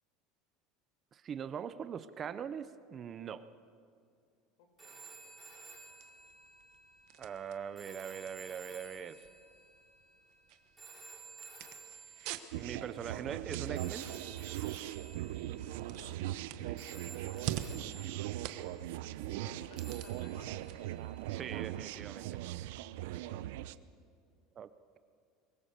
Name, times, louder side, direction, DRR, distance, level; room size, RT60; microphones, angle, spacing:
voice 1, 1.1-3.4 7.2-9.2 12.6-14.1 16.6-17.0 21.3-22.3 24.6-24.7, right 7 dB, 25° right, 13 dB, 0.5 m, -42 dB
voice 2, 4.6-5.0 15.9-16.2 17.6-18.2 19.3-20.5 23.2-23.5, left 5 dB, 70° left, 6 dB, 4.4 m, -59 dB
sound 1, 4.8-13.0 13.7-16.5 16.8-18.9 19.8-22.0 23.1-23.3, right 3 dB, 5° right, 5.6 m, -54 dB
sound 2, 5.1-22.1, right 12 dB, 50° right, 1.1 m, -49 dB
sound 3, 12.5-23.7, right 14 dB, 70° right, 0.6 m, -40 dB
23.0 x 20.5 x 6.6 m, 2.4 s
cardioid pair, 175°, 0 cm